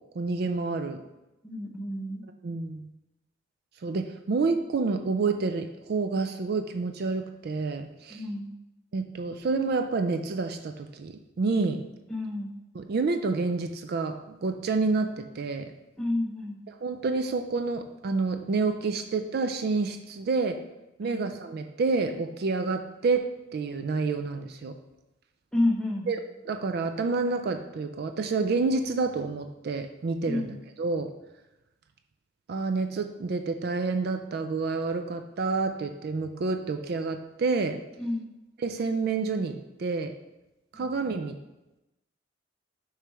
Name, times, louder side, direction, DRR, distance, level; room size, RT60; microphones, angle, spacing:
voice 1, 0.2-1.0 2.4-2.9 3.8-8.2 8.9-11.8 12.7-15.7 16.7-20.6 21.0-24.8 26.1-31.1 32.5-37.8 38.6-40.1 40.7-41.4, right 4 dB, 55° right, 7 dB, 0.4 m, -29 dB
voice 2, 1.4-2.2 8.1-8.5 12.1-12.5 16.0-16.6 21.0-21.2 25.5-26.1 30.3-30.5 38.0-38.3 40.7-40.9, left 1 dB, 5° left, -1 dB, 0.8 m, -30 dB
6.7 x 3.2 x 4.6 m, 0.96 s
head